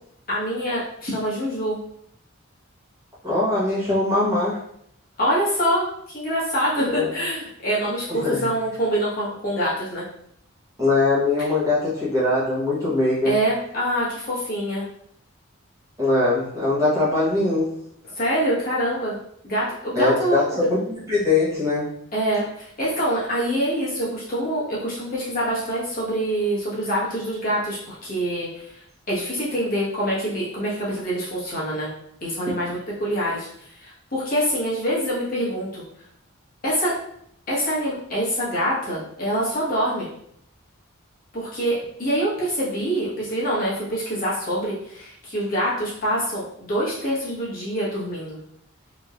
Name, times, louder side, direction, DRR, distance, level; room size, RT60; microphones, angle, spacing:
voice 1, 0.3-1.8 5.2-10.0 13.2-14.8 18.2-19.2 19.4-20.6 22.1-28.7 29.1-31.9 32.2-33.5 33.8-35.8 36.6-36.9 37.5-40.1 41.3-48.4, equal, 40° left, -7 dB, 1.3 m, -25 dB
voice 2, 3.2-4.6 6.9-7.1 8.1-8.5 10.8-13.4 16.0-17.8 19.9-21.9, left 2 dB, 15° right, -9 dB, 1.1 m, -22 dB
3.6 x 3.1 x 2.5 m, 0.69 s
head